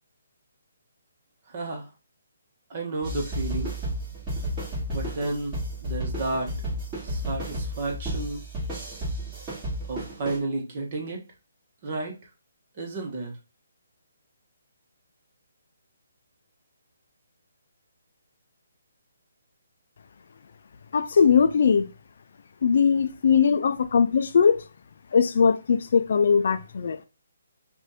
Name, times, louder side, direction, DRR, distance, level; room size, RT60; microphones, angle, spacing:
voice 1, 1.5-1.8 2.7-3.7 4.9-6.5 7.0-8.4 9.9-11.2 11.8-12.1 12.8-13.3, right 2 dB, 40° right, 1.4 m, -31 dB
sound 1, 3.0-10.4, equal, 20° right, 2.4 m, -32 dB
voice 2, 20.9-21.9 22.6-24.6 25.1-27.0, left 6 dB, 60° left, 0.4 m, -20 dB
4.7 x 2.6 x 4.1 m
hypercardioid pair, 160°, 0 cm